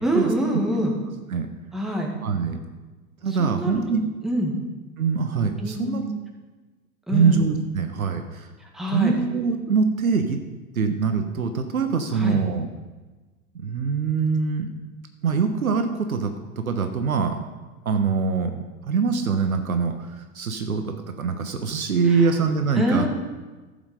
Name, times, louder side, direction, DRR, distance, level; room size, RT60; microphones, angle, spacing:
voice 1, 0.0-0.9 1.7-2.1 3.4-3.8 4.2-4.5 5.6-6.0 7.1-7.4 8.7-9.1 12.2-12.4 22.1-22.3 22.8-23.1, equal, ahead, -1 dB, 1.9 m, -25 dB
voice 2, 2.2-2.6 3.2-4.1 5.0-6.0 7.1-8.5 8.9-10.4 10.7-12.7 13.6-14.7 15.2-17.4 17.8-20.1 20.3-23.1, right 5 dB, 70° right, 6 dB, 1.2 m, -23 dB
14.5 x 7.3 x 5.2 m, 1.2 s
figure-of-eight pair, 90°, 44 cm